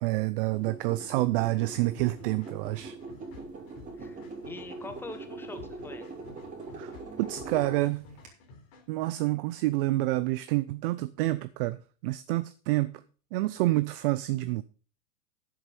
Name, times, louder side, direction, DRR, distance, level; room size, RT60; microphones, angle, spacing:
voice 1, 0.0-3.0 6.8-6.9 7.2-8.1 8.9-13.0 13.3-14.6, right 18 dB, 45° right, 0.5 m, -28 dB
sound 1, 0.5-8.3, right 3 dB, 20° right, 2.8 m, -42 dB
sound 2, 2.0-9.2, left 4 dB, 50° left, 3.3 m, -52 dB
voice 2, 4.0-6.1, left 3 dB, 5° left, 0.9 m, -44 dB
10.0 x 7.8 x 5.3 m
supercardioid pair, 160°, 40 cm